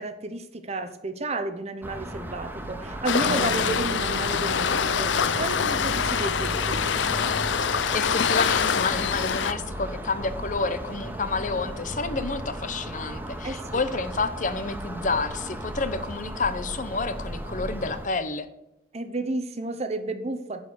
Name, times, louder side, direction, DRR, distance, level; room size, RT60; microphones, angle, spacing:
voice 1, 0.0-6.8 13.4-13.8 18.9-20.6, right 2 dB, 35° right, 9 dB, 0.9 m, -32 dB
sound 1, 1.8-18.1, right 1 dB, 10° right, 0.8 m, -35 dB
Waves surf, 3.1-9.5, left 7 dB, 75° left, 0.5 m, -25 dB
sound 2, 3.3-12.5, right 5 dB, 70° right, 0.5 m, -41 dB
voice 2, 7.6-18.5, left 3 dB, 40° left, 12 dB, 0.8 m, -29 dB
11.0 x 4.9 x 8.3 m, 0.86 s
head